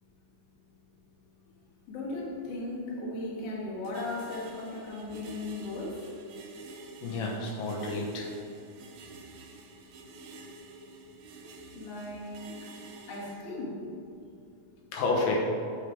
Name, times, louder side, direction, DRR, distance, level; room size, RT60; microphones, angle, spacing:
voice 1, 1.9-6.2 11.7-12.7 13.1-13.9, left 2 dB, 50° left, -5 dB, 2.3 m, -37 dB
sound 1, 3.8-13.4, right 3 dB, 75° right, 1.9 m, -49 dB
voice 2, 7.0-8.3 14.9-15.4, left 2 dB, 85° left, -1 dB, 2.5 m, -30 dB
6.5 x 6.4 x 5.0 m, 2.6 s
omnidirectional pair, 3.8 m